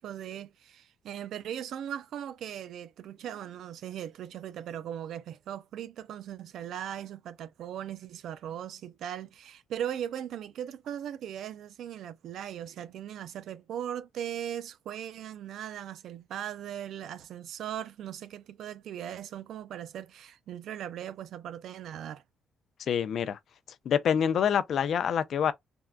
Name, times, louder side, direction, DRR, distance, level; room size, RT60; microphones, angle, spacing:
voice 1, 0.0-22.2, right 10 dB, 75° right, 0.4 m, -39 dB
voice 2, 22.9-23.4 23.9-25.5, left 8 dB, 65° left, 0.5 m, -26 dB
3.6 x 2.1 x 2.3 m
cardioid pair, 90°, 0 cm